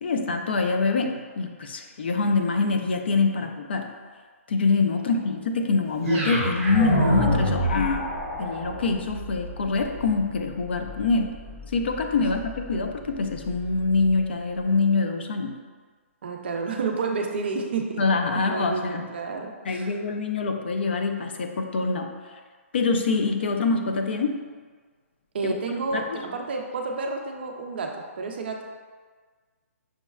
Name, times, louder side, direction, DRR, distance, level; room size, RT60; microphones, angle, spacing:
voice 1, 0.0-4.0 4.5-8.1 8.4-11.4 11.7-15.6 18.0-19.1 19.6-22.1 22.7-24.4 25.4-26.2, left 4 dB, 45° left, 5 dB, 0.3 m, -25 dB
sound 1, 6.0-14.2, right 1 dB, 5° right, 0.9 m, -29 dB
voice 2, 16.2-18.0 18.5-19.9 25.3-28.6, right 4 dB, 45° right, 2 dB, 0.4 m, -30 dB
6.2 x 2.1 x 2.3 m, 1.5 s
hypercardioid pair, 170°, 8 cm